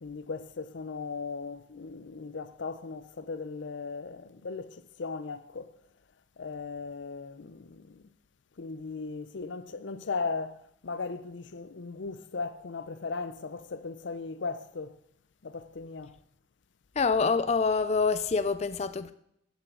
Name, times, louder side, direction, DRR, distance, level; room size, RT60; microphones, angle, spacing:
voice 1, 0.0-5.8 6.4-8.1 8.6-15.0 15.4-16.2, left 4 dB, 90° left, 0.6 m, -37 dB
voice 2, 17.0-19.1, left 4 dB, 35° left, 0.4 m, -26 dB
14.5 x 8.1 x 3.8 m
head